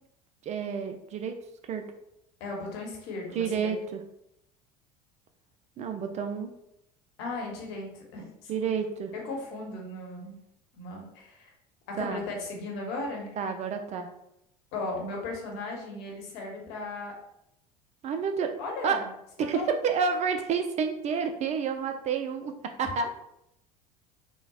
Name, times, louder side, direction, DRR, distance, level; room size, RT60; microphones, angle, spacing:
voice 1, 0.4-1.4 1.7-1.9 3.3-4.0 5.8-6.5 8.5-9.1 12.0-12.2 13.4-14.1 18.0-18.5 18.8-19.0 19.4-22.5 22.8-23.2, right 6 dB, 35° right, 6 dB, 0.4 m, -29 dB
voice 2, 2.4-3.7 7.2-8.5 9.1-10.4 10.7-11.5 11.9-13.3 14.7-17.1 18.6-19.1 19.4-19.8 22.8-22.9, left 2 dB, 60° left, 0 dB, 1.0 m, -36 dB
3.9 x 2.1 x 2.3 m, 0.78 s
hypercardioid pair, 70°, 20 cm